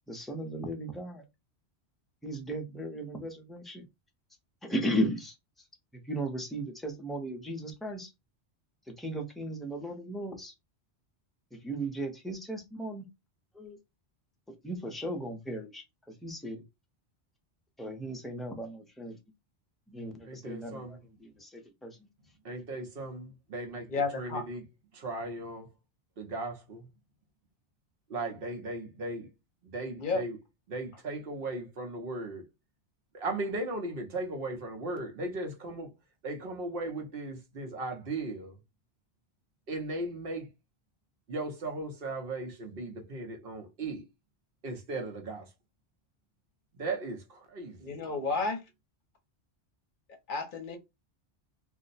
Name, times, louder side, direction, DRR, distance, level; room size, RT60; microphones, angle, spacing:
voice 1, 0.1-1.2 2.2-3.9 4.6-5.4 5.9-8.1 8.9-10.5 11.5-13.1 13.5-13.8 14.6-16.6 17.8-19.2 19.9-22.1, right 1 dB, ahead, 0.4 m, -36 dB
voice 2, 20.2-21.0 22.4-23.9 24.1-24.6 24.9-25.7 26.2-26.8 28.1-29.3 29.6-30.4 30.7-32.4 33.1-35.9 36.2-38.6 39.7-40.5 41.3-44.0 44.6-45.5 46.7-47.8, right 2 dB, 60° right, 0.9 m, -37 dB
voice 3, 23.9-24.5 30.0-30.2 47.8-48.6 50.1-50.8, left 3 dB, 50° left, 0.8 m, -32 dB
2.5 x 2.1 x 3.9 m
omnidirectional pair, 1.1 m